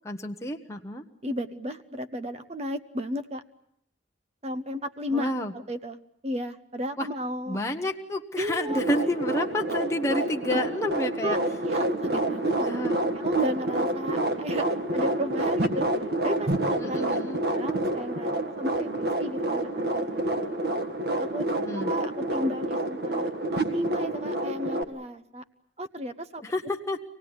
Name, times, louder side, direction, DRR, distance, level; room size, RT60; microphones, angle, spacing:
voice 1, 0.0-1.0 5.1-5.5 7.0-7.1 7.5-11.4 12.6-13.0 16.8-17.4 21.5-21.9 26.4-27.0, left 1 dB, 15° left, 2 dB, 1.0 m, -30 dB
voice 2, 1.2-3.4 4.4-5.3 5.5-6.0 6.2-7.6 8.4-8.8 10.5-11.0 11.2-11.4 11.6-12.8 13.2-15.9 16.2-17.0 17.5-18.3 18.6-20.4 21.2-21.5 21.7-25.4 25.8-26.4, equal, 35° right, 10 dB, 1.0 m, -33 dB
sound 1, 8.7-24.8, right 1 dB, 55° right, 1.7 m, -28 dB
26.0 x 18.5 x 9.6 m, 0.75 s
head